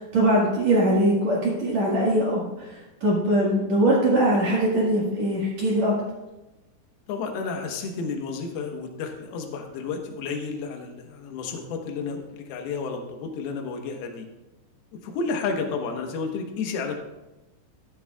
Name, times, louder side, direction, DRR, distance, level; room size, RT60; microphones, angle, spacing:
voice 1, 0.0-2.7 3.0-5.9, right 1 dB, 55° right, -4 dB, 2.0 m, -22 dB
voice 2, 7.1-14.3 15.0-16.9, left 4 dB, 70° left, 3 dB, 2.6 m, -31 dB
14.5 x 12.5 x 2.4 m, 1.0 s
omnidirectional pair, 5.6 m